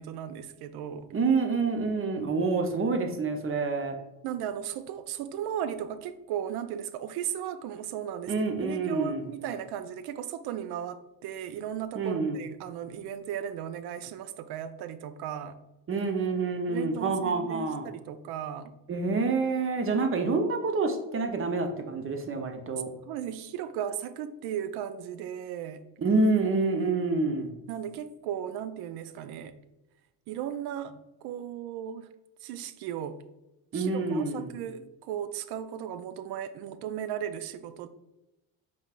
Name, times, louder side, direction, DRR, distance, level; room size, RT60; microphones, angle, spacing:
voice 1, 0.0-1.1 4.2-8.3 8.6-15.6 16.7-18.7 23.0-25.8 27.7-29.6 30.3-30.9 31.2-32.1 32.4-33.2 33.7-37.9, right 9 dB, 65° right, 0.5 m, -36 dB
voice 2, 1.1-4.0 8.3-9.2 11.9-12.4 15.9-17.9 18.9-22.9 26.0-27.5 33.7-34.5, right 3 dB, 30° right, 0.7 m, -27 dB
5.2 x 3.4 x 2.4 m
supercardioid pair, 80°, 42 cm